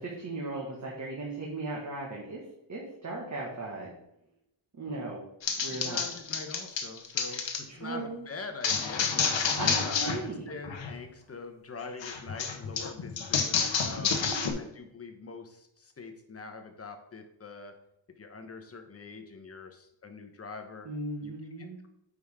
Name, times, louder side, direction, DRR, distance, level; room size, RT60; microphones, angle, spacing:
voice 1, 0.0-2.4 2.7-3.9 4.7-5.2 5.6-6.0 7.3-8.2 9.1-9.2 9.6-10.5 13.9-14.6 20.8-21.8, right 2 dB, 40° right, -3 dB, 1.7 m, -37 dB
sound 1, 5.4-7.6 8.6-10.2 10.5-10.9 12.0-14.5, left 6 dB, 70° left, 1.1 m, -29 dB
voice 2, 5.7-9.4 9.8-14.2 14.5-17.7 18.2-20.9 21.2-21.3 21.6-21.9, left 4 dB, 30° left, 6 dB, 1.1 m, -44 dB
8.7 x 5.2 x 3.7 m, 0.80 s
wide cardioid pair, 150°, 47 cm